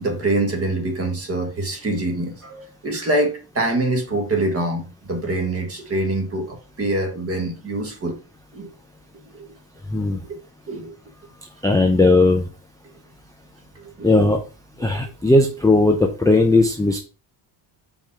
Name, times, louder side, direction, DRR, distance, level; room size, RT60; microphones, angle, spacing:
voice 1, 0.0-8.2 8.5-8.7 9.3-9.5 10.3-10.4 10.7-10.9 13.7-14.2, right 2 dB, 30° right, 1.5 m, -25 dB
voice 2, 11.6-12.5 14.0-14.4 14.8-17.0, left 2 dB, 5° left, 0.5 m, -17 dB
5.2 x 3.7 x 5.5 m
cardioid pair, 150°, 49 cm